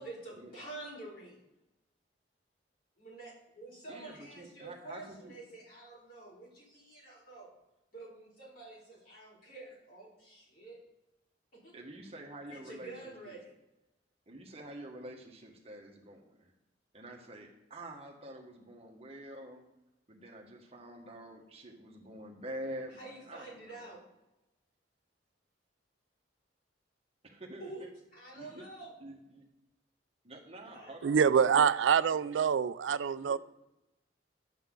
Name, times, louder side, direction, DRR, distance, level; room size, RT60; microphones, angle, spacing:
voice 1, 0.0-1.4 3.0-7.5 7.9-10.8 11.5-11.8 12.5-13.5 22.9-24.0 27.6-27.8 28.1-28.9 30.7-31.7, right 2 dB, 50° left, -4 dB, 4.3 m, -48 dB
voice 2, 3.9-5.3 11.7-13.3 14.3-16.5 16.9-19.6 20.1-23.8 27.2-27.9 28.3-28.7 29.0-29.4 30.2-31.2 33.2-33.4, right 1 dB, 35° right, 1 dB, 1.4 m, -47 dB
voice 3, 31.0-33.4, right 7 dB, 85° right, 15 dB, 0.4 m, -26 dB
11.0 x 8.1 x 3.8 m, 0.92 s
head